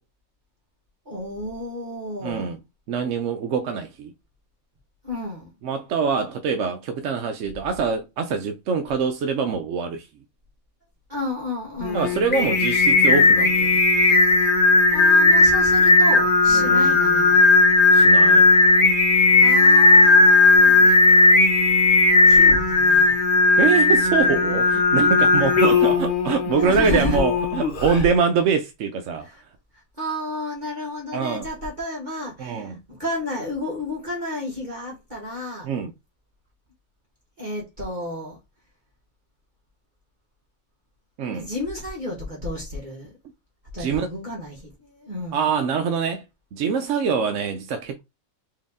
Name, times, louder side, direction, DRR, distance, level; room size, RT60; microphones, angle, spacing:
voice 1, 1.0-2.5 5.0-5.5 11.1-12.1 14.9-17.5 19.4-20.9 22.3-23.2 26.6-27.2 29.2-29.4 29.7-35.7 37.4-38.4 41.3-43.2 43.7-45.5, left 2 dB, 35° right, 1.6 m, -31 dB
voice 2, 2.2-2.6 2.9-4.1 5.6-10.1 11.9-13.8 16.5-17.0 17.9-18.5 23.6-29.3 31.1-31.5 32.4-32.7 35.6-35.9 41.2-41.5 43.8-44.1 45.3-46.2 46.5-48.0, right 6 dB, 70° right, 0.9 m, -24 dB
Singing, 11.8-28.1, left 3 dB, 45° left, 0.9 m, -16 dB
4.6 x 2.9 x 3.5 m
omnidirectional pair, 1.4 m